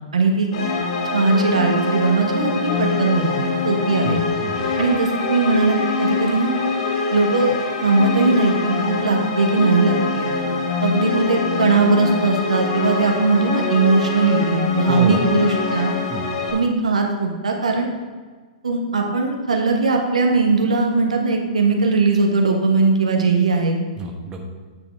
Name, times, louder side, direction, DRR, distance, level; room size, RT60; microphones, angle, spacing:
voice 1, 0.1-0.5 1.1-4.2 4.8-6.6 7.1-7.6 7.8-10.3 10.8-15.9 16.5-17.9 18.6-23.8, right 3 dB, 85° right, 2 dB, 1.2 m, -19 dB
sound 1, 0.5-16.5, left 4 dB, 55° left, 1.6 m, -24 dB
voice 2, 4.0-4.7 14.8-15.2 16.1-16.3 24.0-24.4, right 3 dB, 25° right, 1 dB, 1.2 m, -29 dB
8.7 x 5.0 x 4.6 m, 1.5 s
hypercardioid pair, 115°, 3 cm